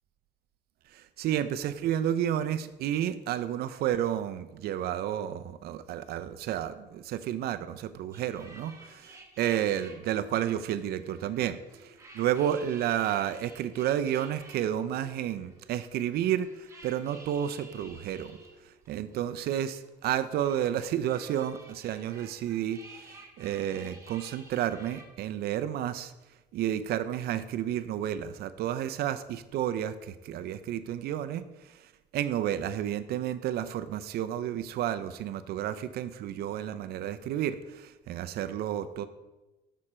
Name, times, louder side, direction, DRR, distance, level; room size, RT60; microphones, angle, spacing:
voice 1, 0.9-18.4 18.6-26.1 26.5-39.1, right 10 dB, 70° right, 12 dB, 0.5 m, -31 dB
sound 1, 8.1-25.0, right 2 dB, 15° right, 1.4 m, -53 dB
6.6 x 6.2 x 4.3 m, 1.1 s
cardioid pair, 110°, 17 cm